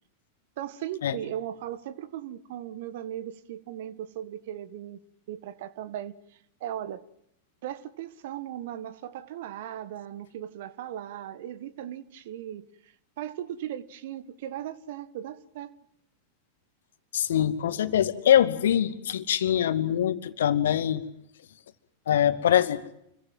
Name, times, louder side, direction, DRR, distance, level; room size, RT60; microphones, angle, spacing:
voice 1, 0.6-5.0 5.3-6.1 6.6-7.0 7.6-15.7, right 11 dB, 55° right, 1.7 m, -37 dB
voice 2, 17.1-21.0 22.1-22.8, left 10 dB, 60° left, 2.3 m, -23 dB
29.0 x 23.0 x 7.5 m
figure-of-eight pair, 90°, 0 cm